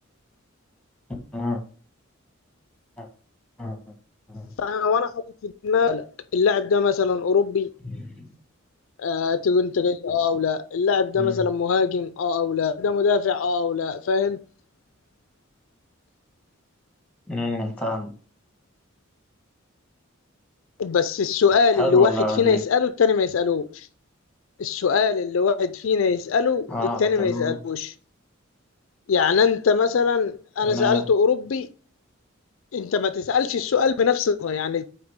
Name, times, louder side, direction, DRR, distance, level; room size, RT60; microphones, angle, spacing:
voice 1, 4.6-6.1 6.3-7.7 9.0-14.4 20.8-23.9 24.6-27.9 29.1-31.7 32.7-34.8, left 5 dB, 70° left, 0.4 m, -22 dB
voice 2, 7.8-8.3 11.1-11.4 17.3-18.1 21.7-22.6 26.7-27.6 30.6-31.0, left 1 dB, 5° left, 1.4 m, -28 dB
8.7 x 3.4 x 3.6 m
head